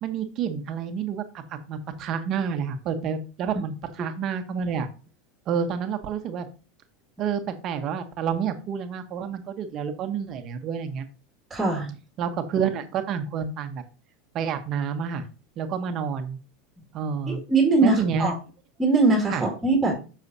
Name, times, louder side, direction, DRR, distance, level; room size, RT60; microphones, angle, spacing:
voice 1, 0.0-4.9 5.5-6.5 7.2-11.0 12.2-13.8 14.3-15.2 15.6-16.4 16.9-17.4 17.8-18.3 19.3-19.4, right 7 dB, 45° right, 7 dB, 1.1 m, -29 dB
voice 2, 11.5-11.9 17.0-18.3 18.8-20.0, right 3 dB, 10° right, 0 dB, 2.2 m, -22 dB
7.9 x 6.2 x 2.8 m, 0.34 s
hypercardioid pair, 95°, 0 cm